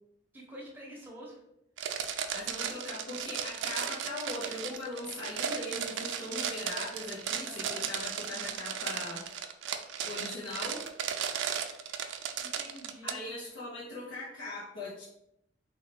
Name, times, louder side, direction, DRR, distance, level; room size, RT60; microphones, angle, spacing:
voice 1, 0.3-1.4 7.5-7.8 12.4-13.2, equal, 10° right, -3 dB, 0.8 m, -47 dB
sound 1, 1.8-13.1, right 8 dB, 75° right, 0.3 m, -35 dB
voice 2, 2.3-9.2 10.0-10.8 13.0-15.0, left 2 dB, 75° left, -7 dB, 0.7 m, -40 dB
3.4 x 2.3 x 3.2 m, 0.81 s
head